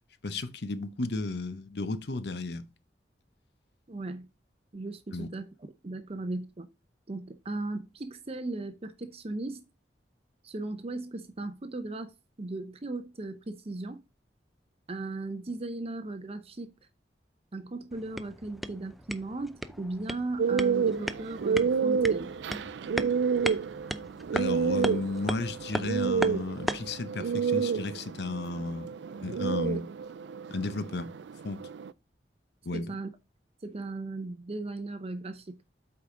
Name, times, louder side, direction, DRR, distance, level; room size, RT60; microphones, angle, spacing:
voice 1, 0.2-2.7 5.1-5.3 24.3-29.8 30.5-31.1 31.4-31.7 32.6-32.9, left 3 dB, 70° left, 0.8 m, -34 dB
voice 2, 3.9-4.3 4.7-5.5 5.8-6.7 7.1-9.7 10.4-14.0 14.9-16.7 17.5-22.3 32.7-33.1 33.6-35.6, right 2 dB, 35° right, 0.7 m, -37 dB
sound 1, 17.9-27.0, equal, ahead, 0.5 m, -37 dB
sound 2, 20.4-31.9, right 6 dB, 80° right, 0.4 m, -29 dB
8.3 x 4.9 x 3.7 m
head